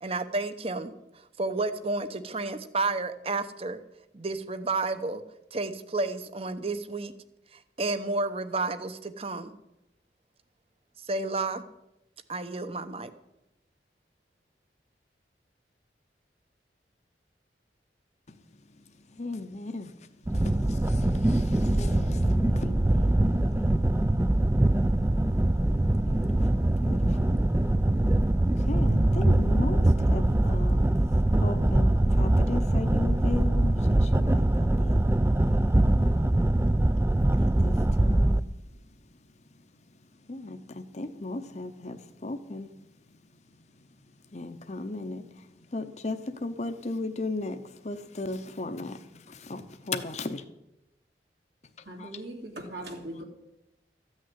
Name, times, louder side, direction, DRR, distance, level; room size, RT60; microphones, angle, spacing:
voice 1, 0.0-3.8 4.1-5.2 5.5-7.1 7.5-9.6 11.1-11.6 12.3-13.1, right 3 dB, 35° right, 12 dB, 0.9 m, -31 dB
voice 2, 19.1-23.9 26.0-27.4 28.6-31.0 31.3-36.9 37.2-38.5 40.0-42.9 43.6-43.9 44.3-50.4 52.0-52.2 53.2-53.3, left 2 dB, 40° left, 8 dB, 0.8 m, -37 dB
sound 1, 20.3-38.4, right 1 dB, 15° right, 0.4 m, -23 dB
voice 3, 51.9-53.2, right 1 dB, 65° right, 0 dB, 2.5 m, -39 dB
14.0 x 6.5 x 9.7 m, 0.88 s
head